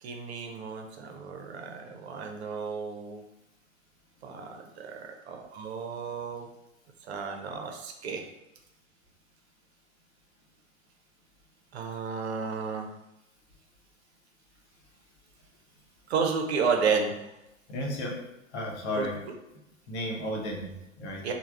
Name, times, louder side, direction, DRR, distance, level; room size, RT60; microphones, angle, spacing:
voice 1, 0.0-3.2 4.2-6.5 7.0-8.3 11.7-12.9 16.1-17.1 19.0-19.1 21.2-21.3, right 5 dB, 55° right, 3 dB, 0.4 m, -32 dB
voice 2, 17.7-18.2 18.5-19.2 19.9-21.3, left 1 dB, 60° left, -1 dB, 0.8 m, -33 dB
3.2 x 2.0 x 2.3 m, 0.94 s
figure-of-eight pair, 105°, 39 cm